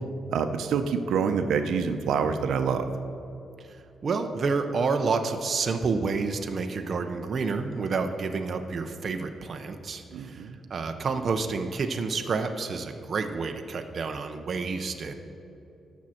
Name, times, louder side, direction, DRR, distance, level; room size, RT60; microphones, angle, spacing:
voice 1, 0.3-2.9 10.1-10.6, right 6 dB, 80° right, 7 dB, 0.6 m, -26 dB
voice 2, 3.6-15.1, right 4 dB, 35° right, 5 dB, 0.6 m, -29 dB
18.0 x 6.2 x 4.3 m, 2.8 s
wide cardioid pair, 175°, 0 cm